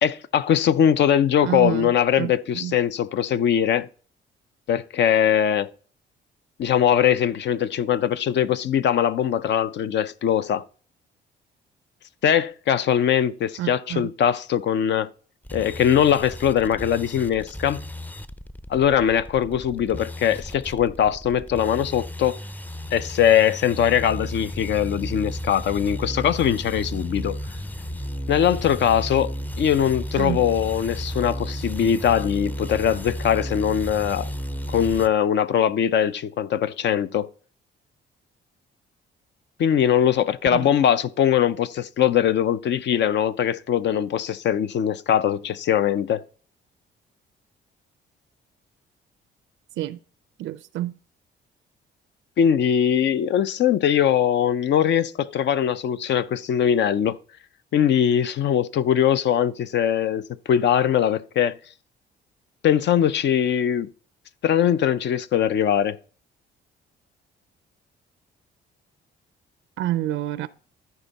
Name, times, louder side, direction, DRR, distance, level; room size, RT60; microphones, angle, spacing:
voice 1, 0.0-3.9 4.7-5.7 6.6-10.6 12.2-15.1 15.5-17.8 18.7-22.4 22.9-27.4 28.3-29.3 29.6-34.3 34.7-37.3 39.6-46.2 52.4-57.2 57.7-61.5 62.6-63.9 64.4-66.0, left 9 dB, 65° left, 0.6 m, -21 dB
voice 2, 1.4-2.8 13.6-14.1 30.2-30.4 40.5-40.7 49.8-50.0 50.4-50.9 69.8-70.5, right 13 dB, 80° right, 0.4 m, -28 dB
sound 1, 15.4-35.1, equal, 10° left, 0.5 m, -33 dB
13.5 x 4.5 x 4.0 m
cardioid pair, 90°, 20 cm